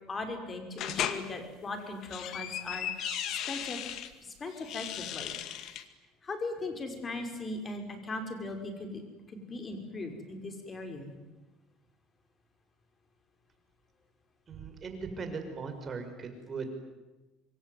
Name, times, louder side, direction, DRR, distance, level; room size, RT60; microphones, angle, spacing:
voice 1, 0.1-2.9 3.3-3.8 4.2-5.3 6.2-9.0 9.3-11.2, left 2 dB, 25° left, 6 dB, 5.7 m, -39 dB
sound 1, 0.8-1.2 1.9-4.1 4.6-5.8, left 10 dB, 60° left, 2.2 m, -36 dB
Cricket, 2.8-3.6, right 9 dB, 50° right, 5.7 m, -49 dB
voice 2, 14.5-16.7, right 4 dB, 35° right, 7 dB, 5.8 m, -39 dB
26.5 x 22.5 x 9.5 m, 1.1 s
supercardioid pair, 115°, 0 cm